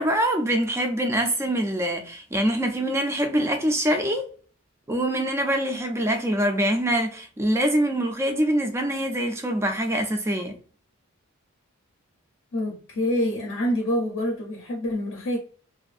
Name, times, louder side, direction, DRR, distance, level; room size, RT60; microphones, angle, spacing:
voice 1, 0.0-4.3 4.9-10.6, right 1 dB, 10° right, 0.3 m, -24 dB
voice 2, 12.5-15.4, left 1 dB, 55° left, 0.6 m, -26 dB
2.5 x 2.4 x 2.4 m
head